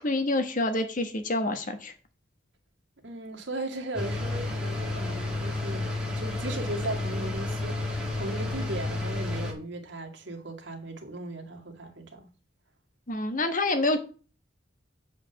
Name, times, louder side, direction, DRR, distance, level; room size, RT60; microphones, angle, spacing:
voice 1, 0.0-1.9 13.1-14.0, left 2 dB, 45° left, 1.3 m, -27 dB
voice 2, 3.0-12.3, right 2 dB, 65° right, 2.2 m, -37 dB
sound 1, 3.9-9.5, left 2 dB, 5° right, 2.4 m, -31 dB
8.7 x 4.9 x 7.0 m
head